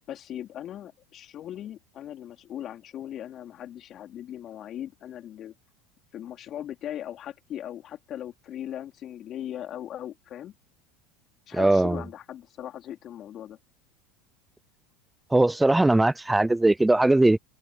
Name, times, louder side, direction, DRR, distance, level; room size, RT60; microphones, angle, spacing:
voice 1, 0.1-5.5 6.1-10.6 11.5-13.6, left 11 dB, 45° left, 4.3 m, -39 dB
voice 2, 11.5-12.0 15.3-17.4, right 2 dB, 10° right, 0.4 m, -20 dB
open air
supercardioid pair, 105°, 0 cm